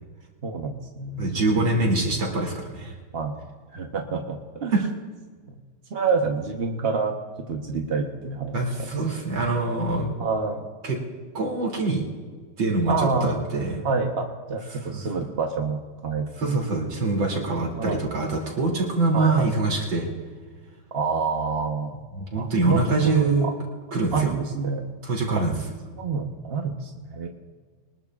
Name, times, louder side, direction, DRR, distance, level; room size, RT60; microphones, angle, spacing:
voice 1, 0.4-2.0 3.1-3.4 3.7-4.8 5.5-5.6 5.9-7.2 7.5-8.9 10.2-10.6 12.9-13.4 13.8-16.6 17.7-18.0 19.1-19.5 20.9-21.9 22.4-23.5 24.1-24.8 25.3-25.4 26.0-27.3, right 4 dB, 40° right, 2 dB, 0.9 m, -28 dB
voice 2, 1.2-2.9 4.7-4.8 8.5-10.1 10.8-11.0 11.3-12.0 12.6-13.8 14.7-15.0 16.4-20.1 22.2-23.5 23.9-24.3 25.0-25.5, right 3 dB, 75° right, -1 dB, 3.6 m, -24 dB
23.5 x 20.0 x 2.4 m, 1.5 s
omnidirectional pair, 2.2 m